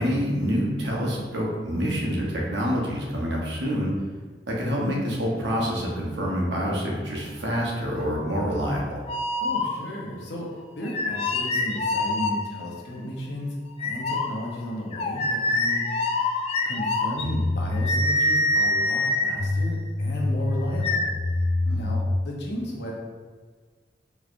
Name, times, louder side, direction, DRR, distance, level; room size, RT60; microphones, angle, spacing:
voice 1, 0.0-3.9 4.5-9.0 21.6-21.9, equal, 90° right, -3 dB, 1.0 m, -27 dB
sound 1, 9.1-10.1 10.8-12.8 13.8-22.0, left 2 dB, 35° left, 0.3 m, -25 dB
voice 2, 9.4-10.5 10.7-16.1 16.6-21.1 21.7-22.9, equal, 75° left, -2 dB, 0.9 m, -34 dB
4.6 x 3.1 x 2.5 m, 1.5 s
head